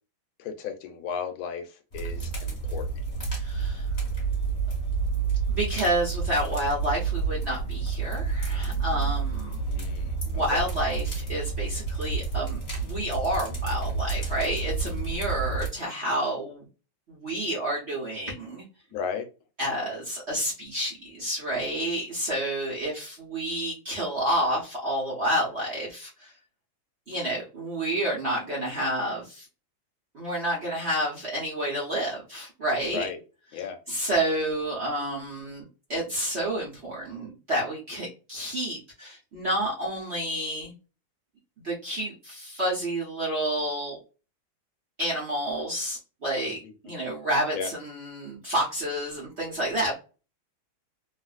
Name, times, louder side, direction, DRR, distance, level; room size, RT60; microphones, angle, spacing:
voice 1, 0.4-2.9 9.7-10.6 18.9-19.2 32.9-33.2 33.5-33.8 46.4-46.7 47.5-47.7, left 6 dB, 80° left, 7 dB, 1.5 m, -35 dB
sound 1, 1.9-15.7, right 4 dB, 35° left, 1.6 m, -29 dB
voice 2, 3.4-3.9 5.5-9.6 10.3-16.6 17.1-18.6 19.6-26.3 27.1-29.5 30.1-33.0 33.9-35.6 35.9-40.7 41.6-44.0 45.0-50.0, right 1 dB, 45° right, -4 dB, 0.9 m, -29 dB
3.3 x 2.5 x 2.4 m, 0.33 s
omnidirectional pair, 2.2 m